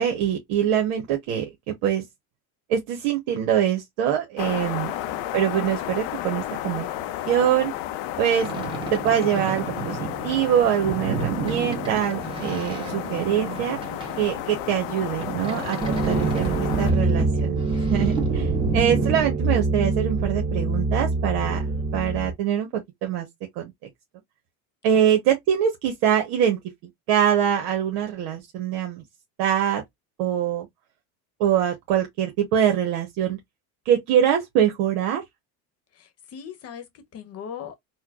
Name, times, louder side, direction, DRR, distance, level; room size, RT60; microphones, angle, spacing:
voice 1, 0.0-2.0 2.7-4.9 5.3-6.9 7.3-7.7 8.2-8.5 8.9-13.8 14.2-16.5 16.8-17.5 17.9-21.7 21.9-23.3 23.6-23.7 24.8-26.6 27.1-29.0 29.4-29.8 30.2-30.7 31.4-33.4 33.9-35.2, right 9 dB, 75° right, 1.0 m, -23 dB
sound 1, 4.4-16.9, left 13 dB, 70° left, 0.6 m, -32 dB
Boat Water vehicle, 8.4-19.2, right 5 dB, 15° right, 1.1 m, -32 dB
sound 2, 15.8-22.3, right 3 dB, 45° right, 1.3 m, -24 dB
voice 2, 15.9-16.3 16.6-17.4 17.7-17.9 21.4-21.9 24.9-25.0 35.9-37.8, left 8 dB, 35° left, 1.0 m, -41 dB
4.3 x 2.2 x 2.3 m
cardioid pair, 125°, 40 cm